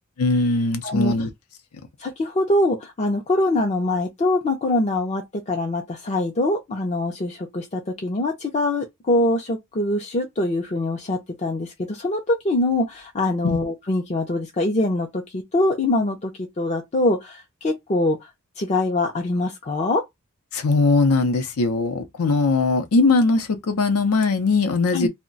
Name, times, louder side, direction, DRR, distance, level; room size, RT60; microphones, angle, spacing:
voice 1, 0.2-1.3 13.4-13.6 20.5-25.1, left 3 dB, 85° left, 0.6 m, -20 dB
voice 2, 0.8-1.1 2.0-18.3 18.6-20.0 24.9-25.1, left 2 dB, 30° left, 0.4 m, -23 dB
2.3 x 2.1 x 3.7 m
head